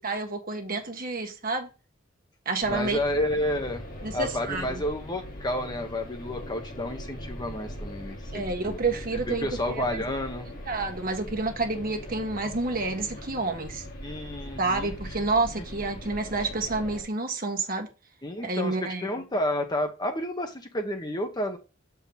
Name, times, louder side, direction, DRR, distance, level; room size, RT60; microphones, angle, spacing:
voice 1, 0.0-1.7 2.4-3.0 4.0-4.8 8.3-10.0 10.7-13.8 14.6-17.9 18.4-19.1, right 3 dB, 45° right, 1.5 m, -29 dB
sound 1, 2.6-17.0, equal, 45° left, 1.7 m, -40 dB
voice 2, 2.7-3.8 4.1-8.8 9.3-10.5 14.0-14.9 15.6-15.7 18.2-21.6, left 1 dB, 20° left, 1.1 m, -30 dB
7.7 x 4.6 x 3.5 m
head